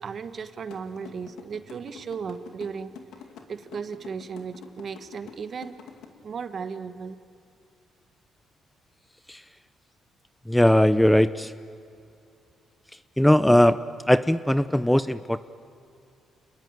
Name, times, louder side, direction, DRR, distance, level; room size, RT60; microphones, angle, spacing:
voice 1, 0.0-2.9 3.5-5.8 6.2-7.2, right 6 dB, 50° right, 9 dB, 1.4 m, -35 dB
sound 1, 0.7-6.0, left 7 dB, 80° left, 2.4 m, -45 dB
voice 2, 10.5-11.5 13.2-13.8 14.1-15.4, left 1 dB, 5° left, 13 dB, 0.6 m, -19 dB
28.5 x 21.0 x 9.2 m, 2.5 s
cardioid pair, 90°, 0 cm